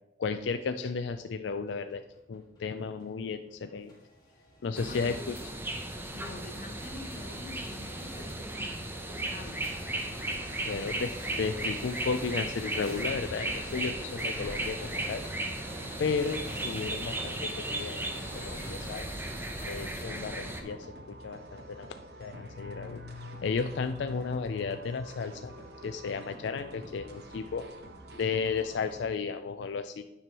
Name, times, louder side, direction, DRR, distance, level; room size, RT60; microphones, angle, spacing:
voice 1, 0.2-2.0 2.3-3.9 4.6-5.4 10.2-10.3 10.7-15.2 16.0-19.1 19.6-21.9 22.2-25.5 25.8-27.7 28.1-30.0, left 5 dB, 80° left, 8 dB, 0.4 m, -34 dB
sound 1, 1.7-20.0, equal, 20° left, 2.1 m, -46 dB
sound 2, 4.7-20.6, right 1 dB, 10° right, 0.6 m, -36 dB
voice 2, 4.8-5.3 6.1-8.8 9.1-9.6, left 2 dB, 45° left, 4 dB, 1.0 m, -45 dB
sound 3, 9.7-13.5 13.8-29.1, right 1 dB, 60° right, 1.0 m, -49 dB
9.6 x 6.1 x 3.0 m, 0.96 s
head